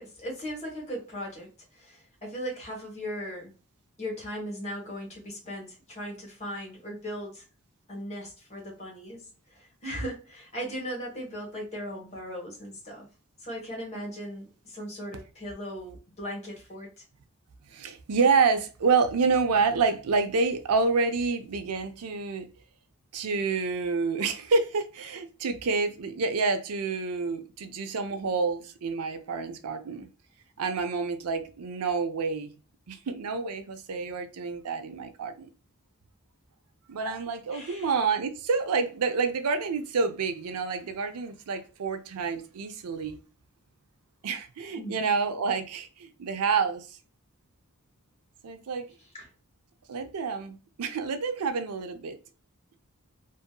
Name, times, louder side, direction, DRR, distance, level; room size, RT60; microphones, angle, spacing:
voice 1, 0.0-3.5 4.0-7.4 7.9-9.2 9.5-13.1 13.4-17.0 37.0-37.1 37.5-37.9 44.7-45.0 49.1-49.3, equal, 30° left, 1.2 m, -38 dB
voice 2, 17.7-22.5 23.1-30.1 30.6-32.5 32.9-35.5 36.9-43.2 44.2-47.0 48.4-48.9 49.9-52.2, right 4 dB, 90° right, 0.5 m, -28 dB
2.7 x 2.5 x 2.2 m
head